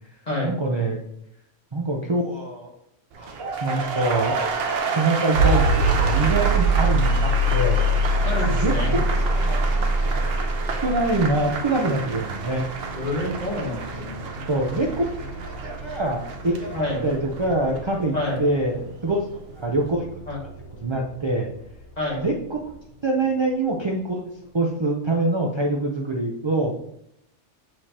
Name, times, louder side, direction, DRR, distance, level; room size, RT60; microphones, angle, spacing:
voice 1, 0.4-1.0 1.7-2.7 3.2-4.3 4.9-7.9 8.6-12.6 14.5-19.3 19.6-20.1 20.8-21.5 22.1-22.7 23.0-26.7, right 2 dB, 35° right, 0 dB, 0.5 m, -25 dB
sound 1, 3.1-19.2 19.5-19.9, right 4 dB, 55° right, 0.8 m, -31 dB
sound 2, 5.3-21.3, right 1 dB, 50° left, 1.8 m, -25 dB
voice 2, 8.2-9.0 12.9-14.3 16.7-17.0 18.1-18.4 20.3-20.4 22.0-22.3, left 1 dB, 30° left, -4 dB, 1.9 m, -28 dB
7.5 x 4.8 x 2.9 m, 0.75 s
omnidirectional pair, 1.4 m